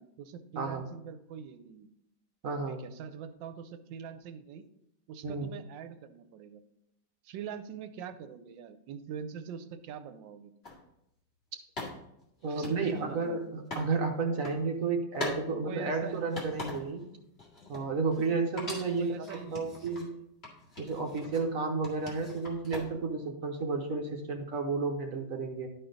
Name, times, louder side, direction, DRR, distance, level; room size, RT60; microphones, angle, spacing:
voice 1, 0.0-1.9 2.7-4.6 5.1-6.6 7.2-10.5 12.4-13.5 15.6-16.2 19.0-19.7, right 7 dB, 85° right, 10 dB, 1.3 m, -43 dB
voice 2, 2.4-2.8 5.2-5.5 12.4-17.0 17.7-19.1 19.5-20.2 20.8-25.7, right 4 dB, 55° right, 3 dB, 1.2 m, -32 dB
sound 1, 10.6-10.8 11.8-13.9 14.2-14.6 15.1-15.4 15.8-17.0 17.4-18.3 18.6-20.1 20.4-21.5 21.8-23.1, left 2 dB, 35° left, 2.1 m, -42 dB
11.5 x 4.3 x 3.9 m, 0.83 s
omnidirectional pair, 2.0 m